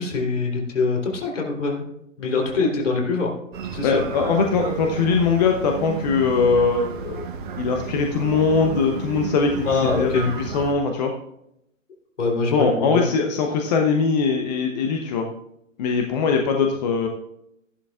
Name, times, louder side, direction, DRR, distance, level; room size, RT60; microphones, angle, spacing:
voice 1, 0.0-1.7 2.2-3.3 3.6-4.0 9.6-10.3 12.2-13.0, left 4 dB, 65° left, 0 dB, 3.5 m, -23 dB
sound 1, 3.5-10.7, right 6 dB, 40° right, 1.2 m, -32 dB
voice 2, 3.8-7.3 7.6-9.7 10.0-11.1 12.5-15.3 15.8-17.1, left 5 dB, 30° left, 3 dB, 1.0 m, -21 dB
14.0 x 11.0 x 2.4 m, 0.79 s
figure-of-eight pair, 125°, 40 cm